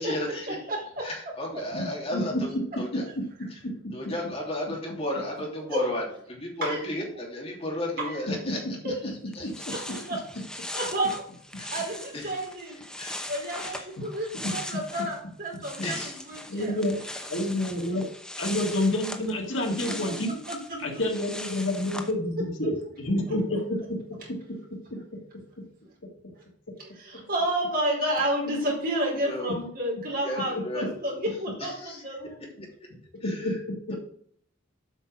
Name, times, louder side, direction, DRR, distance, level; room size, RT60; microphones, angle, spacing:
voice 1, 0.0-0.7 1.0-2.5 2.8-3.0 3.5-3.6 3.9-8.8 9.3-9.7 11.6-11.8 12.1-12.3 13.0-13.3 13.6-13.9 14.5-14.7 15.8-16.2 29.1-29.6 30.2-30.9 31.6-32.0 33.2-33.6, left 1 dB, 30° left, -1 dB, 2.9 m, -34 dB
voice 2, 0.7-1.1 5.7-5.8 6.6-6.8 8.0-8.1 9.7-10.2 10.7-11.2 11.7-12.8 13.3-16.8 19.9-20.1 20.5-20.6 26.8-32.4, right 1 dB, 45° right, -2 dB, 4.3 m, -30 dB
voice 3, 1.7-2.6 3.8-4.0 8.4-8.6 9.4-9.7 14.0-14.1 16.5-17.0 17.3-18.1 18.4-20.3 20.8-24.0 24.9-25.0 33.2-33.8, left 1 dB, 70° left, 0 dB, 2.0 m, -28 dB
sound 1, 9.0-9.1 9.3-15.2 15.5-22.1, left 1 dB, 5° left, 0.8 m, -40 dB
8.2 x 5.7 x 6.1 m, 0.63 s
head